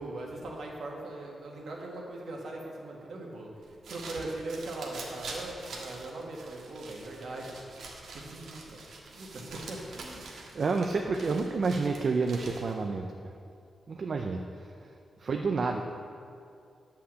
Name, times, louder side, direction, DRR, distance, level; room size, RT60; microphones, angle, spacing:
voice 1, 0.0-7.6 8.1-8.8 9.0-10.2, right 2 dB, 60° right, -1 dB, 1.7 m, -40 dB
sound 1, 3.6-12.9, right 3 dB, 85° right, 1.5 m, -45 dB
voice 2, 10.2-13.1 13.9-14.9 15.2-15.8, right 4 dB, 45° right, 3 dB, 0.5 m, -30 dB
10.0 x 5.7 x 7.5 m, 2.4 s
wide cardioid pair, 180°, 0 cm